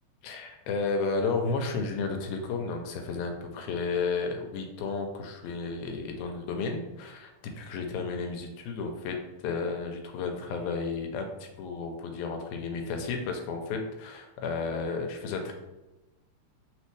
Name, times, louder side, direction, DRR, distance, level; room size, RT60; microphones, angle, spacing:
voice 1, 0.2-9.2 9.4-11.3 11.6-15.5, left 4 dB, 85° left, 4 dB, 2.0 m, -32 dB
4.2 x 3.8 x 3.2 m, 1.1 s
omnidirectional pair, 3.4 m